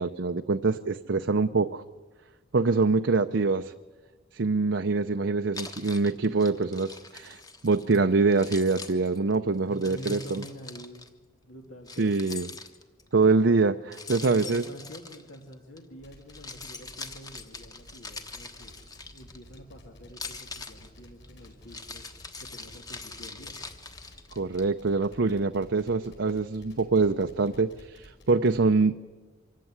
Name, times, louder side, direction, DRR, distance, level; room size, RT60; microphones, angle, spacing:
voice 1, 0.0-1.8 2.5-3.7 4.3-10.4 12.0-12.5 13.1-14.6 24.4-28.9, right 3 dB, 60° right, 7 dB, 0.6 m, -24 dB
Keys jangling, 5.5-8.0 8.3-11.1 11.9-13.1 13.9-15.8 16.2-19.6 20.1-24.6, left 4 dB, 20° left, 1.2 m, -43 dB
voice 2, 9.7-11.1 11.4-12.4 14.2-22.0 22.4-23.7, equal, 75° left, 1 dB, 2.4 m, -46 dB
sound 1, 16.0-28.6, equal, 55° left, 5.2 m, -53 dB
25.0 x 15.0 x 9.6 m, 1.3 s
head